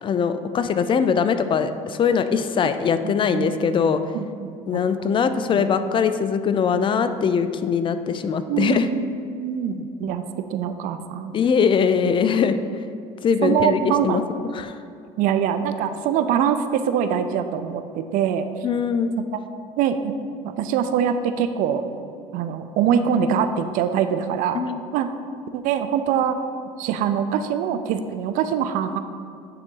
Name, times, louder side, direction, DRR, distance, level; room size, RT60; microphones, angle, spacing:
voice 1, 0.0-4.0 4.7-8.9 11.3-12.6 13.2-14.2 14.5-14.7 18.6-19.2 24.5-24.8, left 6 dB, 35° left, 10 dB, 0.4 m, -21 dB
voice 2, 3.0-3.5 4.1-4.6 5.0-5.1 5.6-5.7 8.5-11.4 13.4-14.2 15.2-18.5 19.3-19.4 19.8-20.1 20.4-21.8 22.3-24.6 24.9-25.1 25.5-26.4 26.8-29.0, right 8 dB, 70° right, 9 dB, 0.5 m, -23 dB
9.0 x 3.9 x 3.8 m, 2.4 s
supercardioid pair, 95°, 14 cm